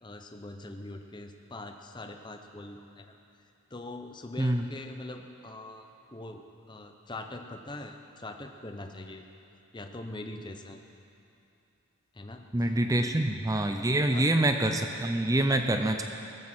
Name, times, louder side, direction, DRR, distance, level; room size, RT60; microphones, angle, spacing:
voice 1, 0.0-3.1 3.7-9.3 9.7-10.8 12.1-13.2 14.1-14.3 14.6-14.7 15.5-15.6, left 2 dB, 20° left, 5 dB, 0.7 m, -43 dB
voice 2, 12.5-16.0, right 1 dB, 15° right, 5 dB, 0.5 m, -26 dB
17.0 x 14.5 x 4.3 m, 2.7 s
head